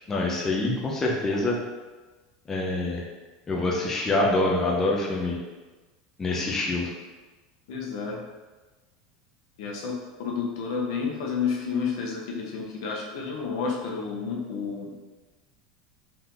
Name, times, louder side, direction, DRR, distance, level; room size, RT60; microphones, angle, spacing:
voice 1, 0.1-1.6 2.5-3.0 3.5-5.3 6.2-6.9, left 2 dB, 15° left, -2 dB, 0.5 m, -25 dB
voice 2, 7.7-8.2 9.6-15.0, left 5 dB, 70° left, -1 dB, 0.9 m, -30 dB
4.0 x 2.8 x 3.7 m, 1.2 s
supercardioid pair, 155°, 3 cm